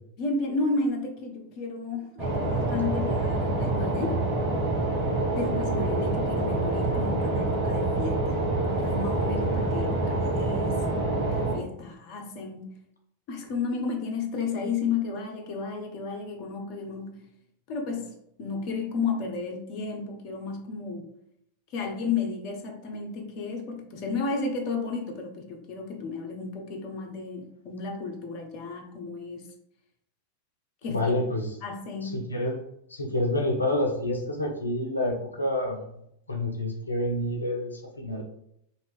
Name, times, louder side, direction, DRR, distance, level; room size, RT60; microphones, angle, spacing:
voice 1, 0.2-4.2 5.4-8.5 8.7-12.7 13.3-17.2 17.7-18.1 18.4-21.1 21.7-29.5 30.8-31.1 31.6-32.2, left 4 dB, 40° left, 2 dB, 0.7 m, -32 dB
sound 1, 2.2-11.6, right 2 dB, 40° right, 1.3 m, -26 dB
voice 2, 30.9-31.6 32.0-32.6 32.9-35.9 36.3-38.2, left 1 dB, 80° left, 1 dB, 0.5 m, -28 dB
2.8 x 2.5 x 3.4 m, 0.74 s
figure-of-eight pair, 90°, 0 cm